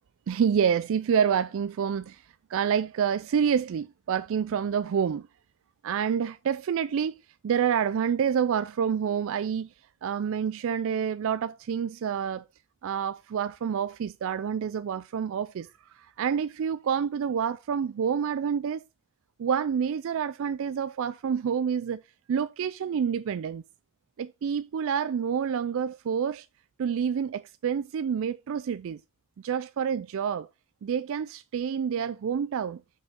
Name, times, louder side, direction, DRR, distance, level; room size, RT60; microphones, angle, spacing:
voice 1, 0.3-2.2 2.5-5.3 5.8-7.1 7.4-9.7 10.0-12.4 12.8-15.7 15.9-18.8 19.4-22.0 22.3-23.6 24.2-26.5 26.8-29.0 29.4-30.5 30.8-32.8, right 7 dB, 65° right, 0.3 m, -28 dB
6.0 x 5.1 x 5.1 m
head